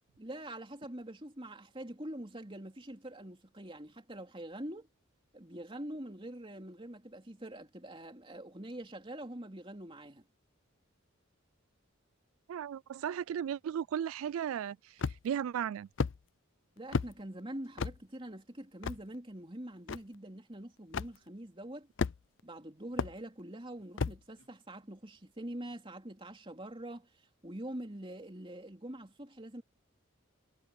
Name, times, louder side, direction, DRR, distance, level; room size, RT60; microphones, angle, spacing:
voice 1, 0.2-4.9 5.3-10.3 16.8-21.9 22.4-29.6, right 1 dB, 25° right, 3.2 m, -45 dB
voice 2, 12.5-15.9, right 9 dB, 85° right, 0.3 m, -36 dB
sound 1, 15.0-15.4 16.0-16.2 16.9-17.1 17.8-18.0 18.8-19.0 19.9-20.0 20.9-21.1 22.0-22.4 23.0-23.1 24.0-24.2, left 5 dB, 60° left, 0.5 m, -32 dB
head